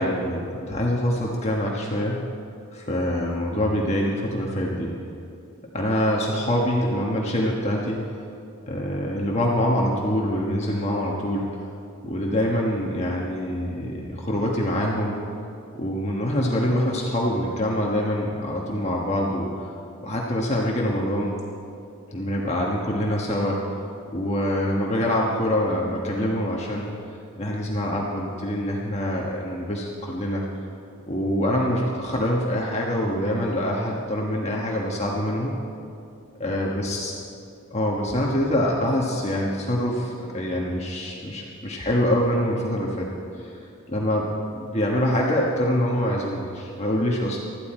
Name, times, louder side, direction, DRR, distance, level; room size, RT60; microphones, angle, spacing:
voice 1, 0.0-2.2 2.7-4.9 5.7-8.0 8.7-11.5 12.0-15.2 15.8-19.7 20.0-21.4 22.1-23.6 24.1-26.9 27.4-30.4 31.1-35.5 36.4-37.1 37.7-43.1 43.4-43.5 43.9-44.3 44.5-47.4, equal, 30° left, -2 dB, 1.4 m, -25 dB
20.5 x 13.5 x 4.5 m, 2.5 s
head